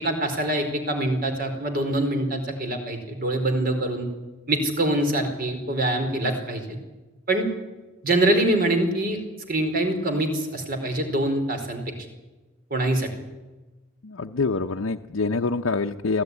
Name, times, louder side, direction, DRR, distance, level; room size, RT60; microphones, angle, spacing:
voice 1, 0.0-4.1 4.5-6.8 7.3-7.5 8.0-9.2 9.5-11.8 12.7-13.1, right 1 dB, 45° right, 6 dB, 4.6 m, -24 dB
voice 2, 14.0-16.2, left 3 dB, 90° left, 3 dB, 0.8 m, -26 dB
25.0 x 16.5 x 9.9 m, 1.2 s
head